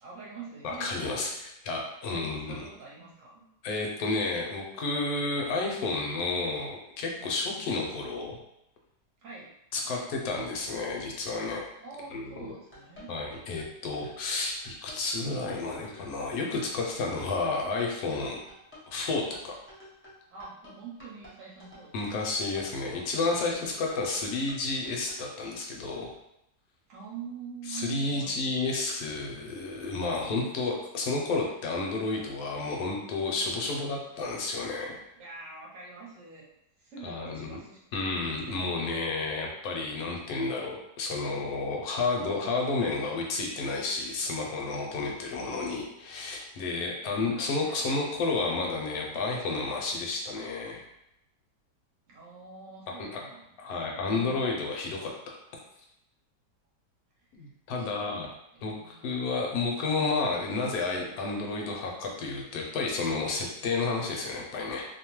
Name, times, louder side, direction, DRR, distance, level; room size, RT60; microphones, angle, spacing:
voice 1, 0.0-1.4 2.1-3.4 7.2-7.9 9.2-9.5 9.8-10.1 11.8-13.1 18.2-18.4 20.3-22.3 26.9-28.7 35.1-36.4 36.8-37.8 38.5-39.0 47.3-48.2 52.1-54.5 57.2-58.2 58.5-59.8, right 5 dB, 60° right, -5 dB, 1.0 m, -46 dB
voice 2, 0.6-2.6 3.6-8.4 9.7-11.6 12.1-12.5 13.1-18.4 18.9-19.5 21.9-26.1 27.7-35.0 37.0-37.6 37.9-50.8 52.9-53.2 53.6-55.3 57.3-58.3 58.6-64.8, left 3 dB, 70° left, 0 dB, 1.0 m, -31 dB
sound 1, 12.5-25.2, left 1 dB, 15° left, 0.4 m, -51 dB
2.8 x 2.0 x 3.0 m, 0.82 s
omnidirectional pair, 1.8 m